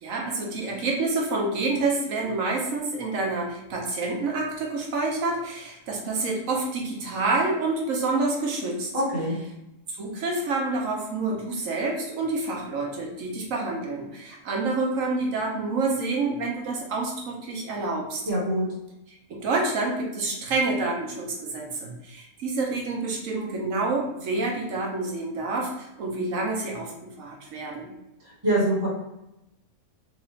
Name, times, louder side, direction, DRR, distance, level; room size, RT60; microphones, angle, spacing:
voice 1, 0.0-8.9 10.0-18.2 19.3-27.9, right 3 dB, 65° right, 0 dB, 1.2 m, -28 dB
voice 2, 8.9-9.4 18.3-18.7 28.4-28.9, right 1 dB, 20° right, -8 dB, 1.5 m, -24 dB
3.9 x 2.5 x 3.2 m, 0.90 s
omnidirectional pair, 1.5 m